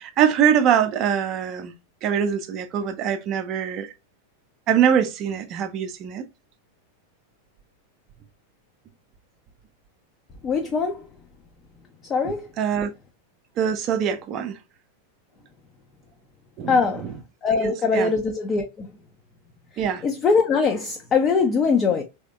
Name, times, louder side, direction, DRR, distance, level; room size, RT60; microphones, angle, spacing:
voice 1, 0.0-1.7 2.0-3.9 4.7-6.2 12.2-12.9 13.6-14.6 16.6-17.2 17.5-18.1 19.8-20.0, right 8 dB, 35° right, 0.5 m, -23 dB
voice 2, 10.4-11.0 12.1-12.5 16.7-17.1 17.4-18.9 20.0-22.0, left 5 dB, 25° left, 0.5 m, -22 dB
3.3 x 2.8 x 2.3 m
figure-of-eight pair, 90°, 0 cm